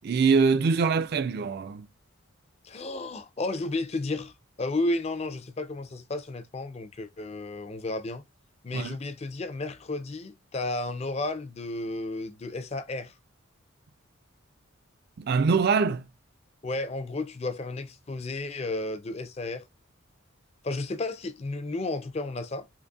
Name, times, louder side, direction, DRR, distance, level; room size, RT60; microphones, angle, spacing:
voice 1, 0.0-1.9 8.7-9.0 15.2-16.0, right 5 dB, 50° right, 0.3 m, -23 dB
voice 2, 2.6-4.3 4.6-8.2 8.6-13.1 16.6-19.7 20.6-22.7, left 2 dB, 30° left, 0.4 m, -32 dB
3.8 x 3.1 x 2.3 m
head